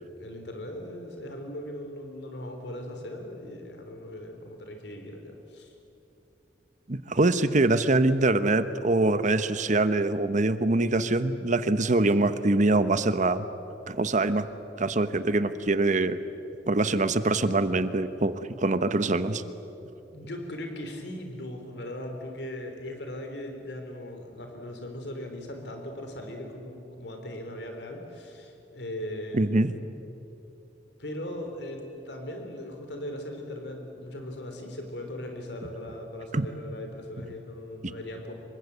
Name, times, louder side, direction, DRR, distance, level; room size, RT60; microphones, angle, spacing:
voice 1, 0.0-5.7 20.1-29.5 31.0-38.3, left 1 dB, 75° left, 4 dB, 3.6 m, -39 dB
voice 2, 6.9-13.5 13.9-14.5 14.8-16.2 16.7-19.4 29.3-29.7 36.3-36.5, right 2 dB, 45° right, 12 dB, 1.1 m, -24 dB
26.5 x 24.0 x 8.1 m, 3.0 s
head